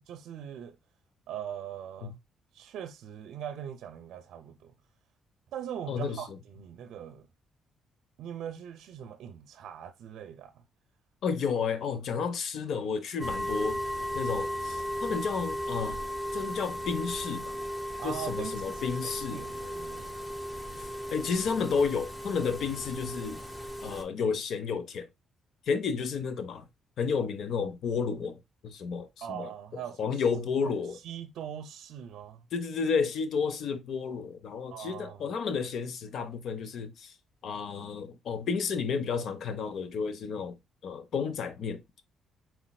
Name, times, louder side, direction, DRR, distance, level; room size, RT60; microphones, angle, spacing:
voice 1, 0.1-0.8 1.3-2.1 2.5-4.7 5.5-7.3 8.2-10.6 18.0-20.2 29.2-30.2 31.0-32.5 34.7-35.2, right 9 dB, 75° right, 0.5 m, -41 dB
voice 2, 5.9-6.4 11.2-13.8 14.1-16.0 16.3-17.6 18.0-19.4 20.8-23.4 23.8-25.1 25.7-26.7 27.0-29.5 30.0-31.0 32.5-37.1 37.4-40.6 40.8-42.0, left 5 dB, 65° left, 0.8 m, -31 dB
sound 1, 13.2-24.0, equal, 5° left, 1.0 m, -36 dB
4.6 x 4.1 x 2.3 m
cardioid pair, 90°, 0 cm